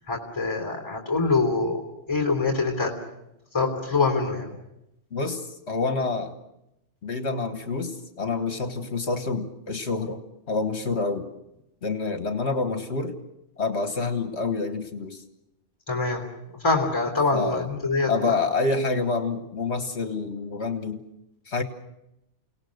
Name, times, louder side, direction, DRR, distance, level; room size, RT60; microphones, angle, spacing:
voice 1, 0.1-1.8 2.1-2.9 3.5-4.6 15.9-16.2 16.6-18.3, left 3 dB, 20° left, 2 dB, 3.6 m, -24 dB
voice 2, 5.1-6.3 7.0-10.2 10.5-11.3 11.8-13.1 13.6-15.2 17.3-17.7 18.1-21.0 21.5-21.6, left 3 dB, 65° left, 7 dB, 1.7 m, -27 dB
30.0 x 18.0 x 6.6 m, 0.86 s
omnidirectional pair, 1.2 m